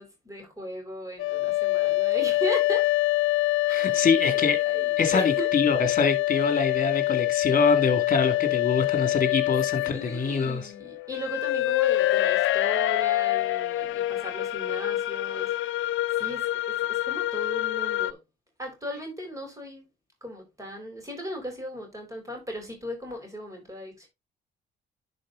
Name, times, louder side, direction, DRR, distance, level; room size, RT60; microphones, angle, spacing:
voice 1, 0.0-2.9 3.7-4.0 4.3-5.5 9.8-15.9 16.1-18.2 18.6-19.8 20.2-24.1, equal, 15° right, 4.5 m, -37 dB
sound 1, 1.2-18.1, left 16 dB, 80° left, 0.5 m, -26 dB
voice 2, 3.7-4.6 5.0-10.6, left 4 dB, 40° left, 2.3 m, -25 dB
10.5 x 4.5 x 3.9 m
cardioid pair, 90°, 20 cm